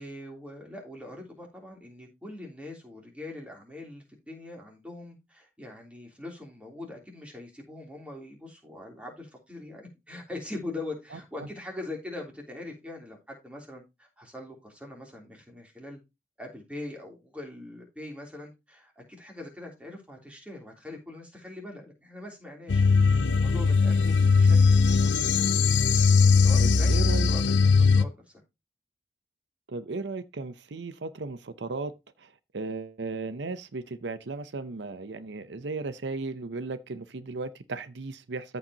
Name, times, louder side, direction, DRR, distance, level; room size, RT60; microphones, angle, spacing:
voice 1, 0.0-16.0 16.4-25.3 26.4-28.4, left 2 dB, 5° right, 3.2 m, -42 dB
voice 2, 11.1-11.5 26.6-27.3 29.7-31.9 32.2-38.6, right 3 dB, 80° right, 0.7 m, -36 dB
sound 1, 22.7-28.0, left 4 dB, 85° left, 0.6 m, -20 dB
14.0 x 5.4 x 2.8 m
head